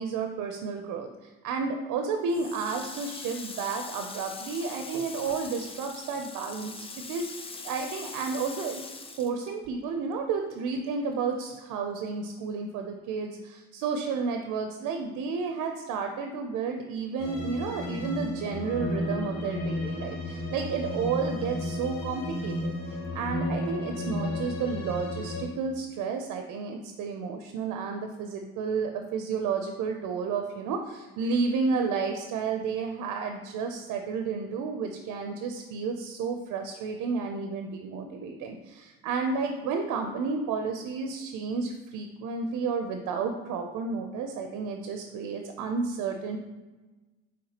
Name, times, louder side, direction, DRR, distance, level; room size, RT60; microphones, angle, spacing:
voice 1, 0.0-8.8 9.2-46.4, right 5 dB, 90° right, 5 dB, 0.5 m, -31 dB
Water tap faucet, 2.3-10.1 10.4-11.8, left 4 dB, 20° left, 0.3 m, -42 dB
sound 1, 17.2-25.4, left 1 dB, 60° left, 0.9 m, -33 dB
5.7 x 3.1 x 2.8 m, 1.2 s
cardioid pair, 90°, 30 cm